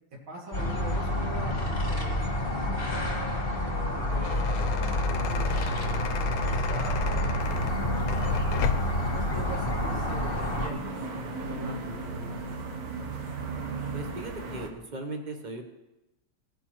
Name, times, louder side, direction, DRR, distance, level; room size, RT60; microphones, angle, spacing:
voice 1, 0.3-3.3 3.6-8.4 9.1-12.5, right 1 dB, 75° right, -3 dB, 3.1 m, -42 dB
sound 1, 0.5-10.7, left 1 dB, 30° left, 1.3 m, -28 dB
sound 2, 3.9-9.1, left 8 dB, 85° left, 1.5 m, -34 dB
sound 3, 7.4-14.7, right 3 dB, 55° right, 1.4 m, -37 dB
voice 2, 13.9-15.6, right 2 dB, 40° right, 4 dB, 0.6 m, -37 dB
16.5 x 9.2 x 3.0 m, 0.98 s
omnidirectional pair, 2.2 m